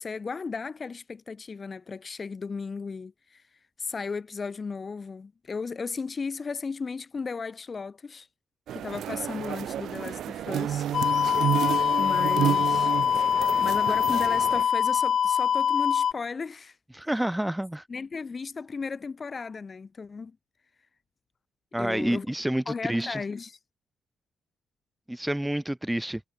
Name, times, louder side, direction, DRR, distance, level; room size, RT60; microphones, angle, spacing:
voice 1, 0.0-3.4 3.8-8.3 8.7-10.9 12.0-12.9 13.6-16.8 17.9-20.4 21.8-22.2 22.7-23.6, left 4 dB, 35° left, 1.3 m, -35 dB
sound 1, 8.7-14.6, right 11 dB, 70° right, 1.1 m, -30 dB
sound 2, 10.9-16.1, left 8 dB, 55° left, 0.4 m, -24 dB
voice 2, 16.9-17.8 21.7-23.2 25.1-26.2, right 1 dB, 5° right, 0.5 m, -28 dB
cardioid pair, 90°, 0 cm